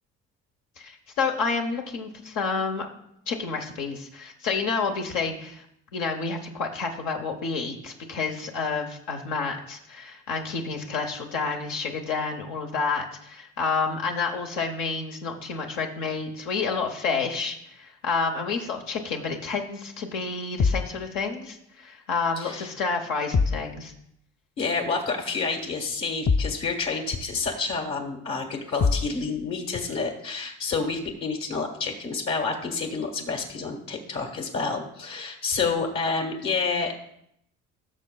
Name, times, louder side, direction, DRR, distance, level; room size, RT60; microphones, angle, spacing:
voice 1, 0.8-2.9 3.3-5.6 5.9-23.9, left 4 dB, 85° left, 2 dB, 1.0 m, -29 dB
sound 1, 20.6-21.0 23.3-23.7 26.2-26.6 28.8-29.2, left 4 dB, 25° left, 0.4 m, -23 dB
voice 2, 22.4-22.7 24.6-37.0, left 4 dB, 65° left, 3 dB, 1.6 m, -29 dB
16.5 x 6.4 x 2.3 m, 0.74 s
supercardioid pair, 75°, 30 cm